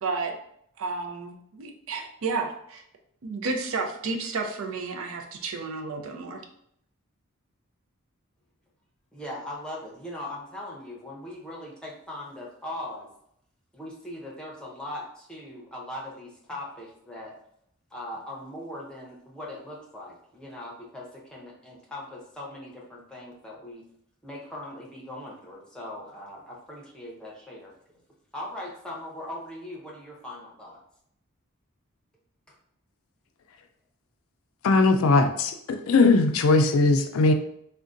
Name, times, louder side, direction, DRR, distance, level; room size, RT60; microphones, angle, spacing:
voice 1, 0.0-0.4 0.8-2.8 3.2-6.4, right 4 dB, 70° right, 4 dB, 0.5 m, -31 dB
voice 2, 9.1-13.1 13.7-17.3 17.9-23.8 24.2-28.0 28.3-30.8 32.5-32.6, left 1 dB, 5° left, -4 dB, 0.6 m, -40 dB
voice 3, 34.6-37.3, left 3 dB, 75° left, 6 dB, 0.4 m, -20 dB
3.6 x 2.2 x 2.5 m, 0.71 s
head